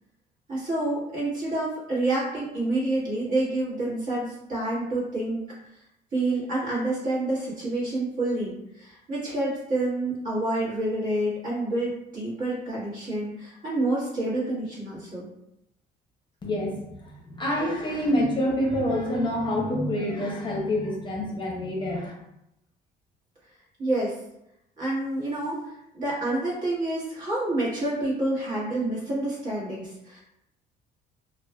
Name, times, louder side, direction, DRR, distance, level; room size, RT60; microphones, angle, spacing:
voice 1, 0.5-5.4 6.1-15.3 23.8-24.2 24.8-30.2, right 2 dB, 50° right, -7 dB, 1.2 m, -28 dB
voice 2, 16.4-22.1, left 1 dB, 30° left, -2 dB, 0.6 m, -27 dB
2.4 x 2.3 x 2.2 m, 0.83 s
cardioid pair, 110°, 17 cm